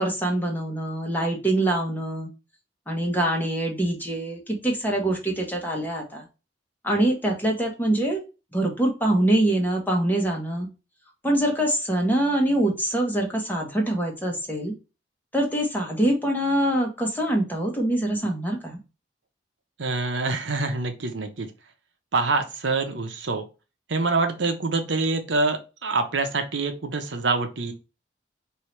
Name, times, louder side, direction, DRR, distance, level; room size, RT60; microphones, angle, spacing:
voice 1, 0.0-2.3 2.9-6.2 6.8-8.2 8.5-10.7 11.2-14.7 15.3-18.8, right 1 dB, 10° left, 1 dB, 1.1 m, -24 dB
voice 2, 19.8-21.5 22.1-23.4 23.9-27.7, right 3 dB, 75° right, 6 dB, 0.8 m, -25 dB
4.6 x 2.8 x 3.2 m, 0.30 s
head